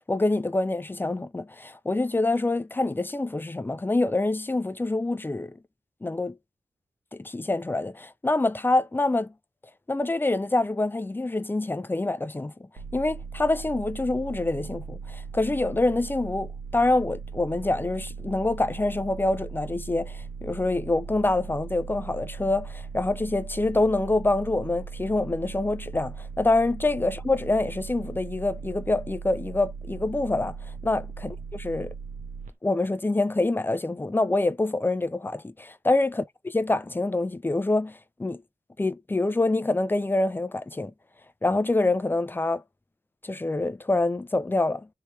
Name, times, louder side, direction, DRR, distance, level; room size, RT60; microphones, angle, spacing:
voice 1, 0.1-5.5 6.0-6.3 7.1-9.3 9.9-12.5 12.9-30.6 30.8-31.0 31.5-31.9 32.6-38.4 38.8-40.9 41.4-42.6 43.2-44.9, left 2 dB, 15° left, 0.4 m, -26 dB
sound 1, 12.8-32.5, right 5 dB, 85° right, 0.8 m, -39 dB
3.2 x 2.8 x 3.0 m
wide cardioid pair, 80°, 13 cm